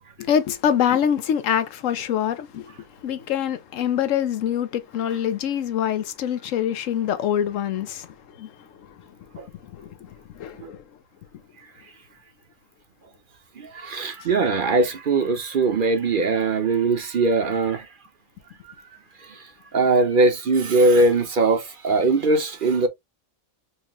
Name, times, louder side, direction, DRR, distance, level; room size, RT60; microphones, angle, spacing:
voice 1, 0.2-2.7 3.0-8.1 8.4-8.5 8.9-9.0 9.7-10.8, left 9 dB, 90° left, 1.1 m, -25 dB
voice 2, 13.6-17.9 19.2-19.4 19.7-22.9, right 3 dB, 50° right, 0.8 m, -21 dB
4.5 x 2.4 x 2.9 m
omnidirectional pair, 1.3 m